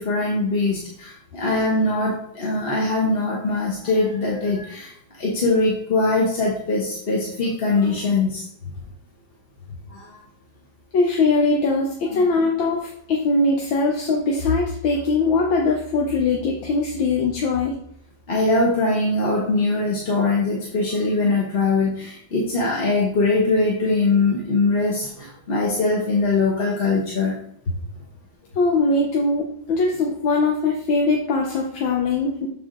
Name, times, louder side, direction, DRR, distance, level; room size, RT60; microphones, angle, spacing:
voice 1, 0.0-4.9 5.2-8.4 9.9-10.2 12.1-12.2 18.3-27.4, left 3 dB, 35° left, -4 dB, 1.2 m, -22 dB
voice 2, 10.9-17.8 28.6-32.5, left 3 dB, 85° left, -1 dB, 1.7 m, -21 dB
7.4 x 4.3 x 3.8 m, 0.68 s
omnidirectional pair, 2.1 m